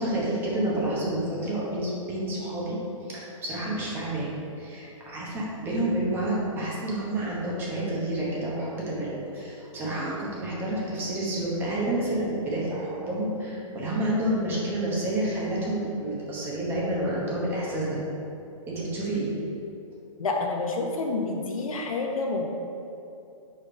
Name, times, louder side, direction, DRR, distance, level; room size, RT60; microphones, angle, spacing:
voice 1, 0.0-2.8 3.1-18.0 18.7-19.3, right 1 dB, 10° right, -5 dB, 1.0 m, -29 dB
voice 2, 20.2-22.5, left 3 dB, 75° left, 1 dB, 1.0 m, -28 dB
5.0 x 4.2 x 5.0 m, 2.7 s
hypercardioid pair, 160°, 17 cm